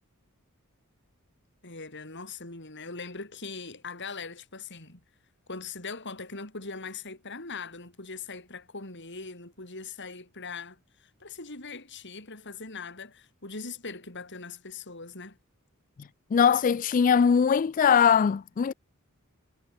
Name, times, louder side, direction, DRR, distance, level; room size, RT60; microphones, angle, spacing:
voice 1, 1.6-5.0 5.5-15.4, left 4 dB, 55° left, 6.0 m, -41 dB
voice 2, 16.3-18.7, left 7 dB, 35° left, 0.3 m, -21 dB
head